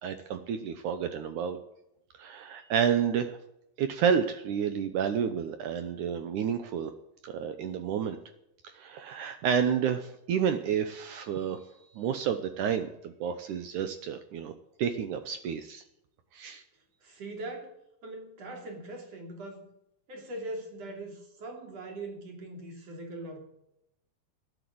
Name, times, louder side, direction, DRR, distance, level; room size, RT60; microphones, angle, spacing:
voice 1, 0.0-1.6 2.2-3.4 3.8-6.9 7.2-8.2 8.7-11.6 12.0-14.5 14.8-15.8 16.3-16.6, right 7 dB, 75° right, 9 dB, 1.9 m, -30 dB
voice 2, 17.0-17.7 18.0-19.7 20.1-23.4, right 2 dB, 45° right, 2 dB, 3.8 m, -41 dB
12.5 x 10.0 x 7.7 m, 0.82 s
omnidirectional pair, 4.5 m